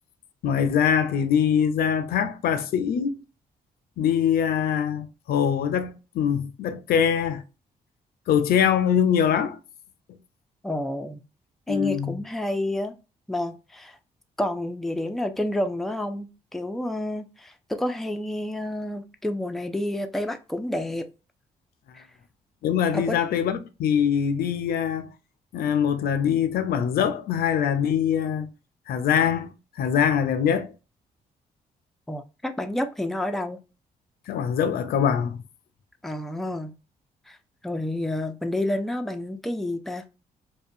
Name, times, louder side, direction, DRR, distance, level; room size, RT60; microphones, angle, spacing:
voice 1, 0.4-3.2 4.0-7.4 8.3-9.6 11.7-12.2 22.6-25.1 25.5-28.5 28.9-30.7 34.3-35.4, left 8 dB, 70° left, 0.4 m, -23 dB
voice 2, 10.6-11.2 11.7-12.9 13.3-14.0 14.4-21.1 21.9-22.0 22.9-23.2 32.1-33.6 36.0-36.7 37.3-37.4 37.6-40.0, left 1 dB, ahead, 0.4 m, -29 dB
2.4 x 2.2 x 2.6 m
supercardioid pair, 65°, 16 cm